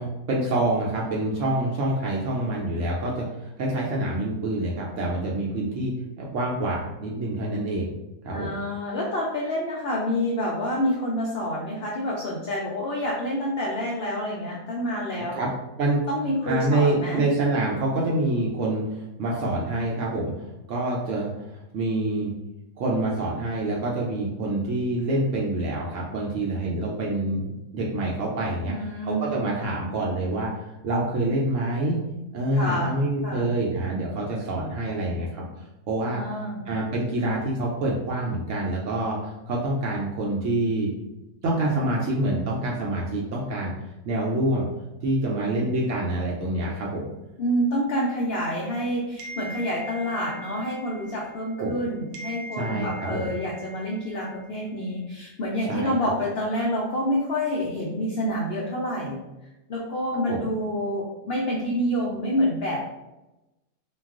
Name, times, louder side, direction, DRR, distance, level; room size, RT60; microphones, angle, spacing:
voice 1, 0.0-7.9 8.2-8.5 15.1-15.5 15.8-16.0 16.5-20.3 20.7-21.3 21.7-22.3 22.8-28.7 29.0-32.0 32.3-35.4 35.9-36.2 36.7-40.9 41.4-43.7 44.0-44.7 45.0-47.1 51.6-51.8 52.5-53.3 55.7-56.1 60.3-60.5, right 1 dB, 70° right, -3 dB, 0.7 m, -26 dB
voice 2, 8.3-15.4 16.1-17.3 28.6-29.4 32.5-32.9 33.2-33.5 36.1-36.7 45.3-45.5 47.4-59.2 59.7-62.9, equal, 75° left, -3 dB, 0.5 m, -28 dB
sound 1, 49.2-51.8 52.1-54.7, right 1 dB, 85° right, 1.1 m, -42 dB
2.3 x 2.3 x 3.5 m, 0.98 s
omnidirectional pair, 1.6 m